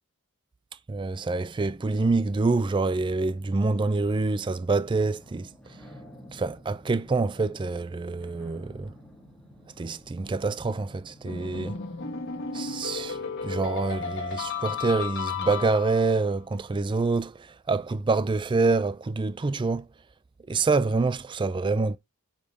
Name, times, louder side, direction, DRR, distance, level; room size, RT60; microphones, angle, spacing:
voice 1, 0.9-5.5 6.3-8.9 9.8-11.8 12.5-19.9 20.5-22.0, right 3 dB, 20° right, 0.3 m, -26 dB
sound 1, 2.3-14.9, equal, 5° left, 1.5 m, -52 dB
sound 2, 11.3-16.2, left 6 dB, 50° left, 1.5 m, -34 dB
5.1 x 5.0 x 5.3 m
head